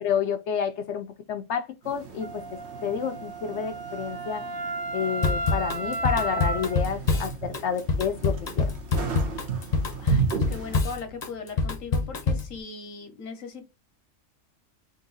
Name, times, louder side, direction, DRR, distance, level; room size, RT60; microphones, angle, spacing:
voice 1, 0.0-2.4 2.8-4.4 4.9-8.7, left 7 dB, 70° left, 0.8 m, -29 dB
sound 1, 1.8-10.8, right 6 dB, 60° right, 1.3 m, -35 dB
Wind instrument woodwind instrument, 2.2-6.9, right 2 dB, 35° right, 0.4 m, -33 dB
Drum kit / Drum, 5.2-12.5, left 3 dB, 40° left, 0.8 m, -26 dB
voice 2, 10.0-13.7, left 4 dB, 85° left, 1.4 m, -39 dB
3.9 x 2.6 x 3.9 m
omnidirectional pair, 1.3 m